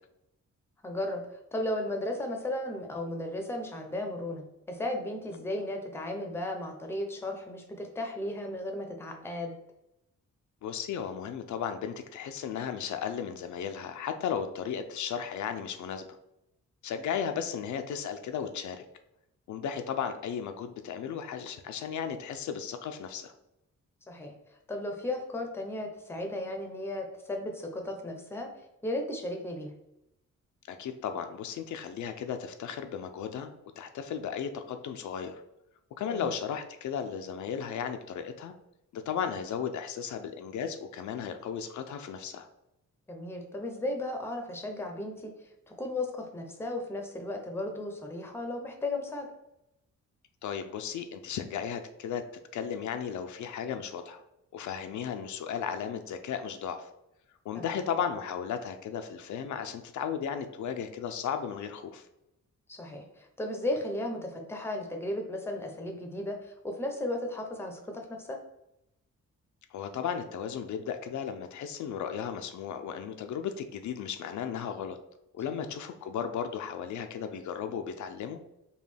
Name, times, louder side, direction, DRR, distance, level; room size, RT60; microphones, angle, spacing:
voice 1, 0.8-1.3 1.5-9.5 24.1-24.3 24.7-28.5 28.8-29.7 36.0-36.3 43.1-45.3 45.7-49.3 57.5-57.8 62.7-68.4 75.6-75.7, left 1 dB, 10° left, 3 dB, 0.5 m, -35 dB
voice 2, 10.6-16.1 16.8-18.8 19.5-23.3 30.7-35.4 36.0-38.5 38.9-42.5 50.4-52.2 52.5-54.2 54.5-56.9 57.4-62.1 69.7-75.0 75.3-78.4, left 7 dB, 75° left, 7 dB, 0.5 m, -35 dB
5.2 x 2.2 x 3.3 m, 0.85 s
wide cardioid pair, 160°, 30 cm